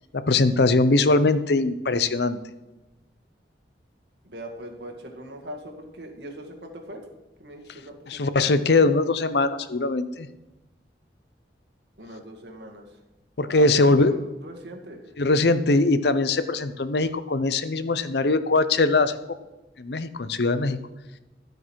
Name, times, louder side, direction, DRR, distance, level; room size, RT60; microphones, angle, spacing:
voice 1, 0.1-2.4 8.1-10.3 13.4-14.2 15.2-19.1 19.8-20.8, left 3 dB, 70° left, 13 dB, 0.7 m, -21 dB
voice 2, 4.2-7.1 7.4-8.5 12.0-13.0 13.5-15.0, right 1 dB, 75° right, 2 dB, 1.9 m, -41 dB
12.5 x 7.8 x 4.6 m, 1.0 s
head